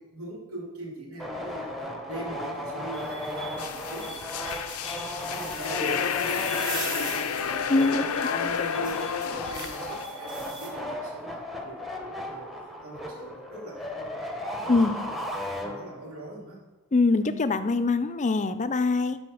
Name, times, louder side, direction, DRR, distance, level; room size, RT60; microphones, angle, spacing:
voice 1, 0.0-14.8 15.5-16.6, right 1 dB, 80° right, -6 dB, 2.8 m, -42 dB
sound 1, 1.2-16.2, left 1 dB, ahead, 0.9 m, -36 dB
sound 2, 2.9-10.7, right 3 dB, 20° right, 2.4 m, -41 dB
sound 3, 3.6-10.1, left 7 dB, 85° left, 0.5 m, -31 dB
voice 2, 7.7-8.5 14.7-14.9 16.9-19.2, left 3 dB, 35° left, 11 dB, 0.5 m, -24 dB
11.5 x 4.2 x 6.2 m, 1.1 s
head